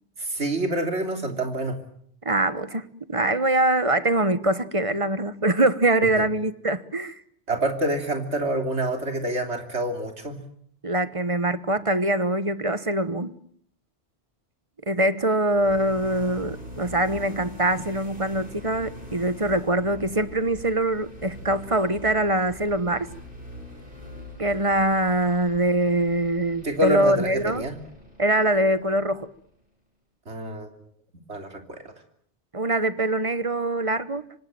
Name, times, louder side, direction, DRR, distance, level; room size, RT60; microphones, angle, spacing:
voice 1, 0.2-1.8 6.2-6.3 7.5-10.4 26.6-27.7 30.3-30.7 31.3-31.8, right 1 dB, 70° right, 5 dB, 3.6 m, -27 dB
voice 2, 2.2-7.2 10.8-13.3 14.9-23.1 24.4-27.6 28.2-29.3 32.5-34.2, right 1 dB, 30° right, 13 dB, 1.2 m, -23 dB
sound 1, 15.5-29.4, left 1 dB, 50° right, 8.1 m, -43 dB
26.5 x 25.5 x 7.7 m, 0.68 s
omnidirectional pair, 1.2 m